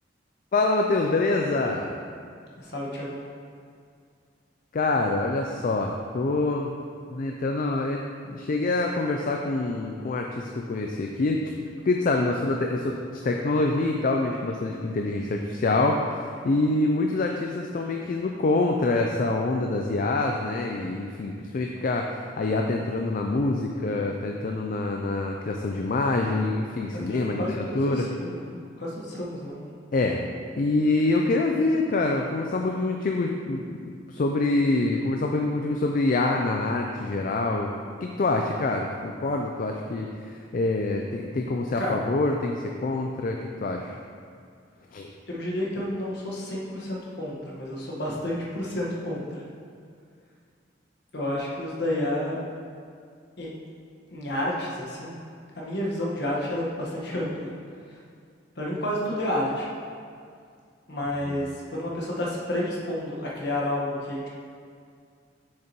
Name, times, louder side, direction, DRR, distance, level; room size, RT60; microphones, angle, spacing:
voice 1, 0.5-1.9 4.7-6.8 7.1-11.4 11.9-28.1 29.9-30.2 30.6-37.7 38.0-42.6 42.8-43.9 44.9-45.1 61.2-61.4, left 2 dB, 45° left, 2 dB, 0.4 m, -26 dB
voice 2, 2.6-3.2 26.9-29.7 41.7-42.0 45.3-49.4 51.1-52.4 53.4-53.5 54.1-55.2 55.5-57.5 58.6-59.7 60.9-64.3, left 1 dB, 60° left, -4 dB, 1.3 m, -30 dB
6.9 x 6.5 x 3.0 m, 2.2 s
head